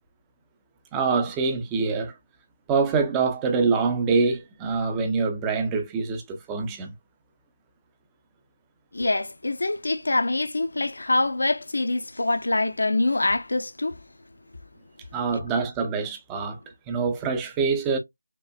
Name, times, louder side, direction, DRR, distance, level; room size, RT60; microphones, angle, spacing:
voice 1, 0.9-2.1 2.7-6.9 15.1-16.6 16.9-18.0, right 4 dB, 10° right, 0.6 m, -25 dB
voice 2, 8.9-14.0, left 2 dB, 70° left, 0.8 m, -25 dB
5.0 x 2.5 x 2.2 m
figure-of-eight pair, 170°, 0 cm